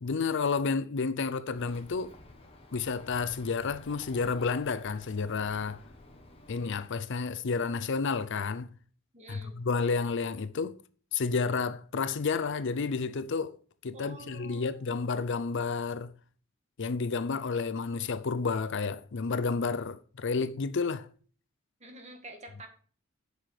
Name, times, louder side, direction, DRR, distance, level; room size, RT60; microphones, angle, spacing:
voice 1, 0.0-2.2 2.7-5.8 6.5-8.7 9.3-10.8 11.1-13.6 13.8-16.1 16.8-21.1, left 4 dB, 55° left, 0.5 m, -31 dB
Bird, 1.5-6.9, left 1 dB, 25° left, 1.6 m, -52 dB
voice 2, 9.1-9.6 13.9-15.0 21.8-22.7, right 2 dB, 30° right, 1.8 m, -48 dB
8.2 x 6.0 x 4.9 m
head